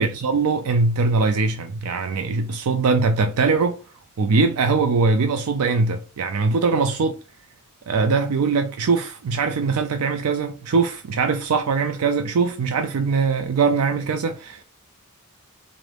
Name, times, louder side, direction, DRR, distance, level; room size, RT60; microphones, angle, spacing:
voice 1, 0.0-3.8 4.2-7.1 7.9-14.6, right 4 dB, 80° right, 0.4 m, -21 dB
3.9 x 2.6 x 3.3 m
head